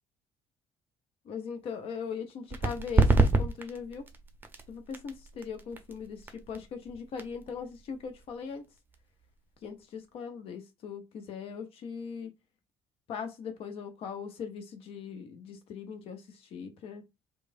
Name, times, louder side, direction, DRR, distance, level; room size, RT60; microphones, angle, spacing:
voice 1, 1.3-4.1 4.7-8.7 9.6-12.3 13.1-17.0, left 6 dB, 50° left, 0.6 m, -40 dB
sound 1, 2.5-9.8, right 2 dB, 15° right, 0.6 m, -30 dB
3.0 x 2.2 x 2.5 m
figure-of-eight pair, 50°, 13 cm